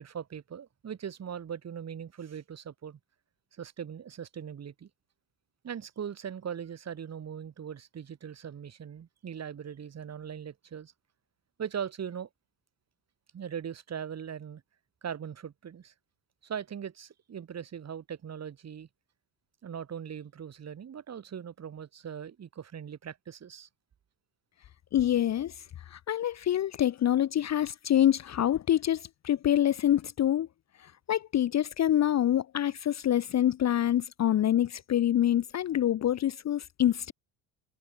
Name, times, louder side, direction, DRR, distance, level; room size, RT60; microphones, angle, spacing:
voice 1, 0.0-3.0 3.5-4.9 5.6-10.9 11.6-12.3 13.3-14.6 15.0-15.9 16.4-18.9 19.6-23.7, right 8 dB, 35° right, 6.8 m, -40 dB
voice 2, 24.9-30.5 30.8-37.1, left 11 dB, 35° left, 0.9 m, -26 dB
cardioid pair, 155°, 45 cm